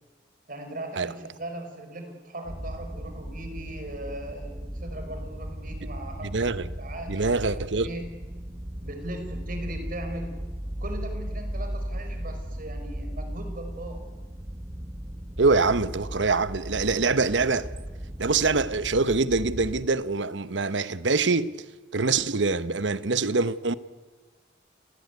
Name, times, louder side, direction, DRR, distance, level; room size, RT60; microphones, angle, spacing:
voice 1, 0.5-6.3 6.8-8.0 8.8-14.0, right 1 dB, 50° right, 5.4 m, -39 dB
sound 1, 2.4-19.9, equal, 20° right, 1.0 m, -36 dB
voice 2, 6.2-6.7 7.1-7.9 15.4-17.7 18.2-21.5 21.9-23.7, right 3 dB, 75° right, 1.1 m, -24 dB
29.0 x 19.0 x 9.6 m
head